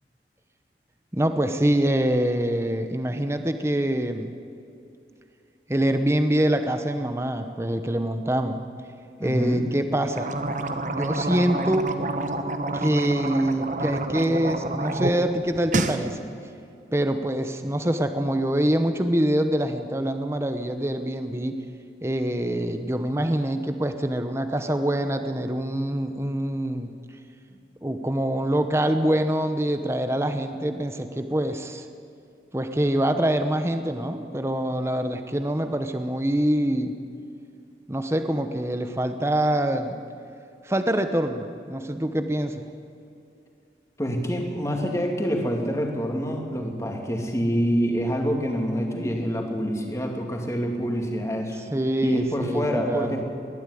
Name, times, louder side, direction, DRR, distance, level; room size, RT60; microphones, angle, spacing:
voice 1, 1.1-4.3 5.7-8.6 9.2-10.3 10.8-11.9 12.7-16.3 16.9-21.6 22.0-26.9 27.8-31.9 32.5-36.9 37.9-40.0 40.6-42.7 51.7-53.2, right 1 dB, 15° right, 8 dB, 0.8 m, -25 dB
voice 2, 9.2-9.7 44.0-51.6 52.0-53.2, equal, 15° left, 2 dB, 2.5 m, -26 dB
sound 1, 10.1-15.1 15.5-16.0, right 2 dB, 45° right, 1.1 m, -28 dB
20.5 x 13.5 x 9.9 m, 2.6 s
head